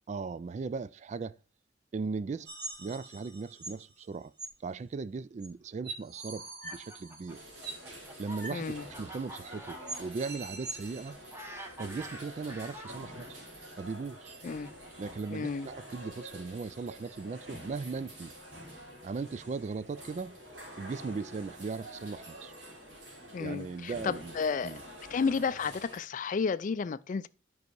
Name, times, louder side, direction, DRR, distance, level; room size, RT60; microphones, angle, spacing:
voice 1, 0.1-1.3 1.9-2.5 2.8-4.3 4.6-7.4 8.2-8.6 9.0-11.2 11.8-13.4 13.8-14.4 15.0-18.3 19.0-20.4 20.8-22.5 23.4-24.3 24.6-24.8, right 4 dB, 40° right, 0.3 m, -38 dB
sound 1, 2.5-3.8 4.4-4.5 5.4-5.5 5.8-7.9 8.4-8.6 8.9-9.0 9.4-9.5 9.9-11.1, right 3 dB, 60° right, 2.6 m, -43 dB
Fowl, 6.4-13.3 14.1-16.2, right 1 dB, 15° right, 1.3 m, -49 dB
sound 2, 7.3-26.0, equal, 80° right, 3.7 m, -48 dB
voice 2, 8.5-8.9 14.4-14.7 15.3-15.7 23.3-24.8 25.1-27.3, left 5 dB, 45° left, 0.4 m, -32 dB
9.6 x 5.4 x 4.6 m
head